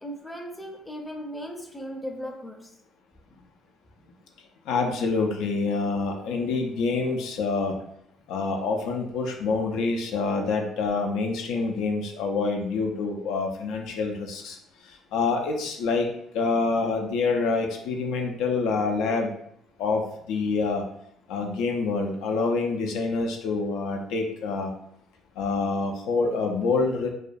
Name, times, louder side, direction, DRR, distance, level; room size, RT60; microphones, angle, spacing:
voice 1, 0.0-2.6 3.3-3.4 4.0-4.1, equal, 10° left, 1 dB, 0.5 m, -37 dB
voice 2, 4.7-7.8 8.3-14.6 15.1-16.1 16.3-19.3 19.8-20.0 20.3-20.8 21.3-24.7 25.4-27.1, left 4 dB, 80° left, 2 dB, 0.3 m, -26 dB
2.3 x 2.2 x 2.5 m, 0.70 s
supercardioid pair, 85°, 0 cm